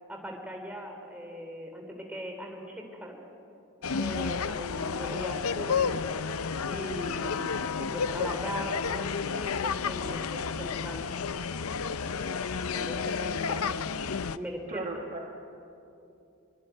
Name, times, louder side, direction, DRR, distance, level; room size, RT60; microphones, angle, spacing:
voice 1, 0.1-3.2 3.9-6.0 6.7-13.9 14.3-14.9, equal, 5° right, 2 dB, 3.3 m, -40 dB
sound 1, 3.8-14.4, left 5 dB, 90° left, 0.7 m, -31 dB
voice 2, 14.7-15.4, right 2 dB, 30° right, 2 dB, 1.3 m, -38 dB
24.5 x 20.5 x 9.2 m, 2.8 s
head